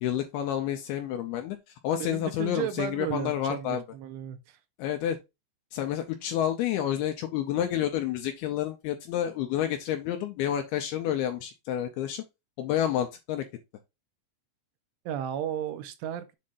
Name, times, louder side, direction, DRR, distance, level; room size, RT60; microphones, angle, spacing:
voice 1, 0.0-1.6 1.8-3.8 4.8-5.2 5.7-12.2 12.6-13.4, left 11 dB, 80° left, 2.3 m, -29 dB
voice 2, 2.0-4.6 15.1-16.4, right 10 dB, 85° right, 2.8 m, -34 dB
7.5 x 2.6 x 5.5 m
omnidirectional pair, 5.1 m